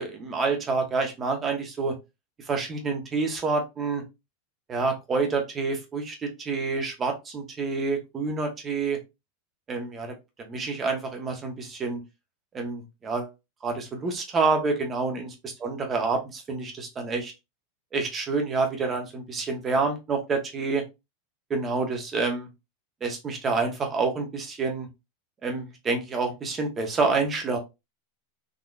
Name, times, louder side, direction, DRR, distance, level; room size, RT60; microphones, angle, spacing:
voice 1, 0.0-1.9 2.5-4.0 4.7-9.0 9.7-12.0 12.5-13.3 13.6-17.3 17.9-20.8 21.5-22.5 23.0-24.9 25.4-27.6, right 4 dB, 20° right, 3 dB, 1.2 m, -28 dB
3.8 x 2.9 x 2.4 m, 0.24 s
supercardioid pair, 135°, 0 cm